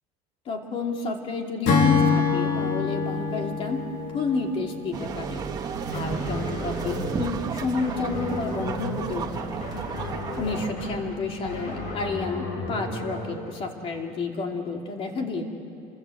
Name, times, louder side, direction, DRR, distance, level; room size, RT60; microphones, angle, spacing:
voice 1, 0.4-3.8 4.1-5.4 5.9-9.6 10.4-15.4, left 3 dB, 35° left, 2 dB, 2.9 m, -30 dB
Acoustic guitar / Strum, 1.7-5.1, left 5 dB, 75° left, 4.2 m, -24 dB
sound 1, 4.9-10.7, right 5 dB, 25° right, 1.6 m, -33 dB
Back Turned, 5.9-13.3, left 1 dB, 60° left, 6.8 m, -35 dB
28.0 x 25.0 x 8.0 m, 2.7 s
cardioid pair, 160°, 16 cm